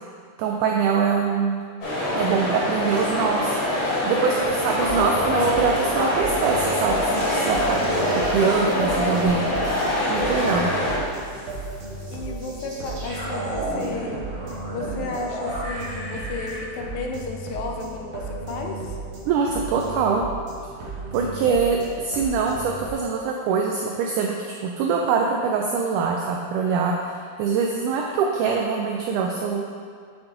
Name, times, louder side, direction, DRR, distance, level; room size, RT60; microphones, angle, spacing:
voice 1, 0.4-1.6 2.2-3.5 4.0-7.8 8.1-9.4 10.0-10.7 19.3-20.3 21.1-21.8 22.0-24.4 24.6-26.9 27.4-29.6, right 5 dB, 85° right, 1 dB, 1.8 m, -23 dB
sound 1, 1.8-11.0, left 1 dB, 50° left, 2.8 m, -24 dB
sound 2, 4.4-22.9, right 3 dB, 65° right, 2.4 m, -35 dB
sound 3, 6.4-10.4 10.7-16.6, right 1 dB, 25° right, 1.2 m, -35 dB
voice 2, 12.1-14.2 14.5-19.0, left 4 dB, 85° left, 2 dB, 2.4 m, -33 dB
7.9 x 5.5 x 3.8 m, 2.1 s
omnidirectional pair, 4.2 m